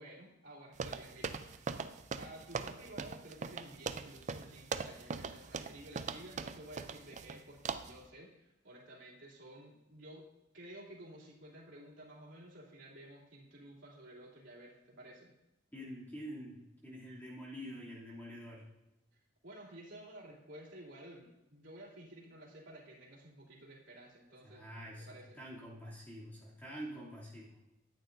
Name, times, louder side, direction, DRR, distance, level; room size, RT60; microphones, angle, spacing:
voice 1, 0.0-1.7 2.2-10.3 10.5-15.3 19.4-24.6 25.0-25.4, right 1 dB, 80° right, -6 dB, 3.0 m, -53 dB
sound 1, 0.8-7.4 7.7-8.0, right 5 dB, 40° right, 0.4 m, -41 dB
voice 2, 15.7-18.7 24.4-27.5, equal, 10° left, -6 dB, 2.8 m, -47 dB
13.0 x 8.8 x 2.6 m, 0.94 s
head